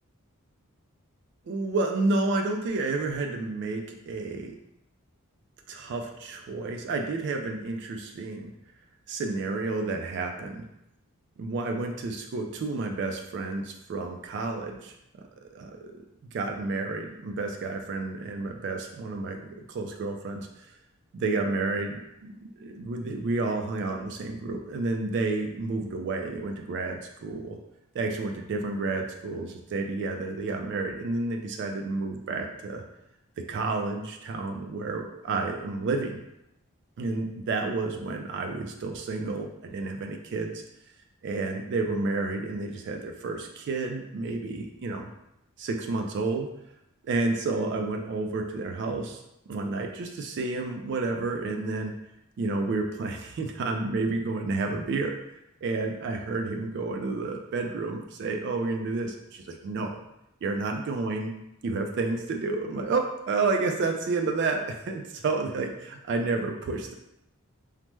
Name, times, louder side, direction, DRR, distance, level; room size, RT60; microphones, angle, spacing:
voice 1, 1.5-4.5 5.7-8.5 9.1-10.6 11.4-14.9 15.5-16.0 16.3-20.7 21.1-27.6 27.9-32.8 33.4-36.2 37.0-40.6 41.2-45.1 45.6-46.5 47.0-49.2 49.5-51.9 52.4-55.2 55.6-60.0 60.4-61.3 61.6-66.9, right 3 dB, 50° right, 4 dB, 0.3 m, -30 dB
3.2 x 2.0 x 3.0 m, 0.83 s
head